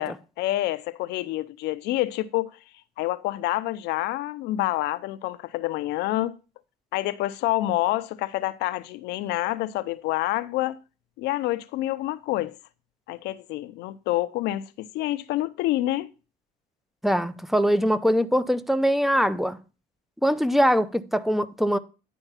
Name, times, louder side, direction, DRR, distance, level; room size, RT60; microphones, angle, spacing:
voice 1, 0.0-2.6 3.0-6.4 6.9-10.8 11.2-12.5 13.1-16.1, left 16 dB, 85° left, 0.6 m, -27 dB
voice 2, 17.0-19.6 20.2-21.8, equal, ahead, 0.5 m, -22 dB
10.0 x 4.5 x 5.7 m
cardioid pair, 110°, 17 cm